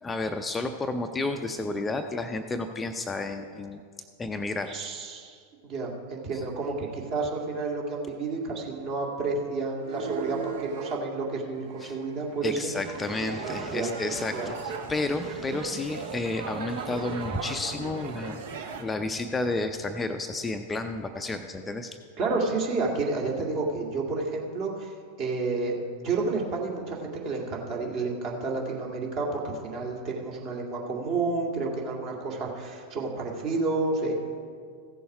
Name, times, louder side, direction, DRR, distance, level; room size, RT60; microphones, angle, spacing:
voice 1, 0.0-3.8 4.2-4.7 11.8-12.0 12.4-18.4 18.8-22.0, left 2 dB, 15° left, 6 dB, 0.5 m, -31 dB
voice 2, 4.7-12.7 13.7-13.9 14.3-14.5 22.2-24.9 25.2-25.8 26.0-34.1, right 3 dB, 40° right, -1 dB, 2.2 m, -30 dB
sound 1, 9.8-11.0 11.6-18.8, right 5 dB, 55° right, 1.0 m, -37 dB
15.5 x 6.9 x 4.9 m, 2.1 s
figure-of-eight pair, 90°, 0 cm